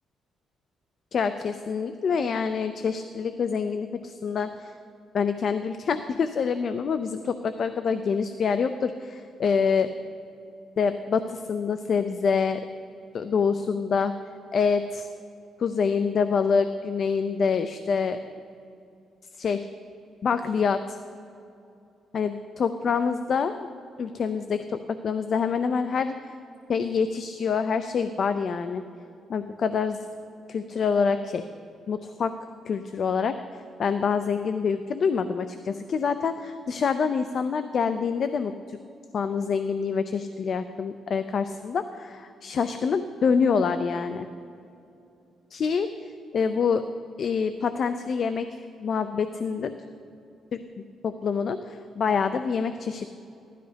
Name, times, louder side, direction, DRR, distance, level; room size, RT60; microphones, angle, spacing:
voice 1, 1.1-4.7 5.1-9.9 10.8-12.6 13.1-14.1 14.5-15.1 15.6-18.2 19.4-19.7 20.2-21.0 22.1-23.7 24.0-26.3 26.7-28.8 29.3-30.0 30.5-31.4 31.9-32.3 32.7-38.8 39.1-44.3 45.5-45.9 46.3-46.8 47.2-49.7 50.5-50.6 51.0-53.1, left 5 dB, 45° left, 10 dB, 0.5 m, -26 dB
16.0 x 12.5 x 5.1 m, 2.6 s
cardioid pair, 160°, 0 cm